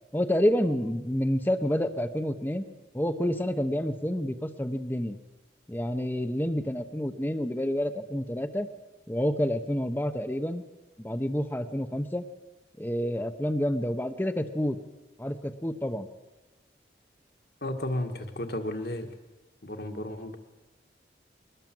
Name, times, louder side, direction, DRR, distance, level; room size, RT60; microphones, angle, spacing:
voice 1, 0.1-2.7 2.9-5.2 5.7-8.7 9.1-10.6 11.0-12.2 12.8-14.8 15.2-16.1, equal, 10° left, 8 dB, 0.9 m, -28 dB
voice 2, 17.6-19.1 19.6-20.4, left 1 dB, 60° left, 5 dB, 2.0 m, -33 dB
22.0 x 19.5 x 7.8 m, 1.1 s
head